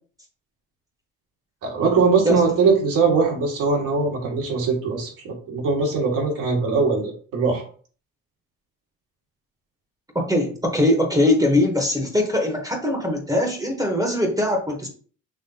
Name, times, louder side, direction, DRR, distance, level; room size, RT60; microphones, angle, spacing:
voice 1, 1.6-7.6, right 4 dB, 75° right, -1 dB, 1.9 m, -21 dB
voice 2, 10.1-14.9, left 1 dB, 10° right, 2 dB, 1.0 m, -21 dB
5.4 x 3.1 x 2.8 m, 0.42 s
cardioid pair, 100°, 32 cm